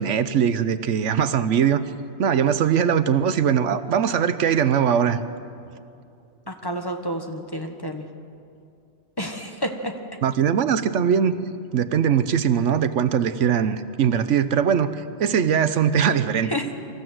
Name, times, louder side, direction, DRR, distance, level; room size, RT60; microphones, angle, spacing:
voice 1, 0.0-1.8 2.2-5.2 10.2-11.4 11.7-14.9 15.2-16.5, right 8 dB, 85° right, 12 dB, 1.1 m, -21 dB
voice 2, 6.5-8.1 9.2-9.9 16.5-16.7, equal, 20° left, 4 dB, 1.4 m, -29 dB
25.0 x 14.5 x 7.9 m, 2.4 s
omnidirectional pair, 1.2 m